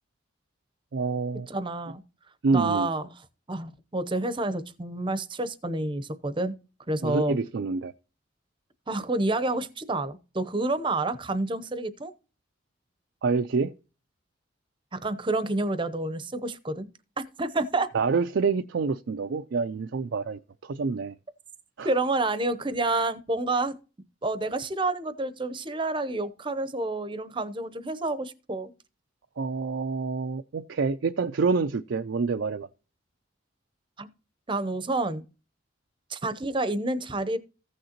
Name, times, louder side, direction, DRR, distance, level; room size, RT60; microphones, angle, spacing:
voice 1, 0.9-1.5 2.4-2.9 7.0-7.9 13.2-13.7 17.9-21.1 21.8-21.9 29.4-32.7, right 4 dB, 65° right, 0.4 m, -27 dB
voice 2, 1.5-2.0 2.5-3.1 3.5-6.5 6.9-7.3 8.9-12.1 14.9-16.9 17.2-17.9 21.8-23.8 24.2-28.7 34.0-34.1 34.5-35.2 36.1-37.4, right 2 dB, 25° right, 0.7 m, -29 dB
15.0 x 6.4 x 2.9 m
head